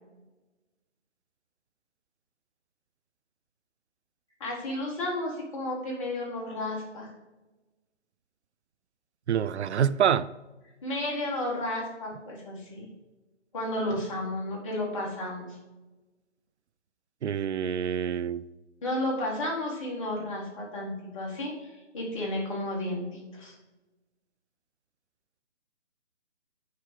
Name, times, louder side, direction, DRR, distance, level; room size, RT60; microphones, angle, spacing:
voice 1, 4.4-7.1 10.8-12.8 13.5-15.5 18.8-23.6, left 1 dB, 25° left, -3 dB, 1.9 m, -32 dB
voice 2, 9.3-10.3 17.2-18.4, right 8 dB, 70° right, 17 dB, 0.5 m, -26 dB
6.6 x 4.6 x 5.2 m, 1.1 s
hypercardioid pair, 160°, 36 cm